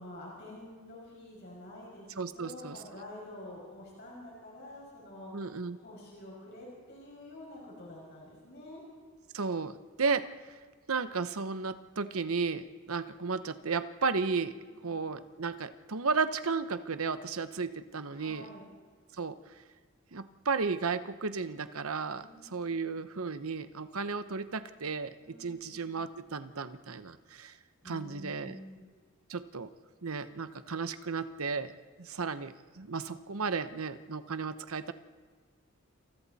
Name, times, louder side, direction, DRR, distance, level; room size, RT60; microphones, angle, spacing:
voice 1, 0.0-5.5 5.8-8.8 14.6-15.0 18.1-18.6 22.1-22.9 25.2-25.9 27.8-28.9, left 1 dB, 50° left, -4 dB, 6.0 m, -48 dB
voice 2, 2.2-2.8 5.3-5.8 9.3-10.6 10.9-14.5 14.8-18.5 19.1-19.5 20.1-25.1 25.4-27.6 27.8-28.6 29.3-29.7 30.0-31.7 32.0-34.9, right 4 dB, 70° right, 11 dB, 0.9 m, -34 dB
28.5 x 28.0 x 4.2 m, 1.5 s
head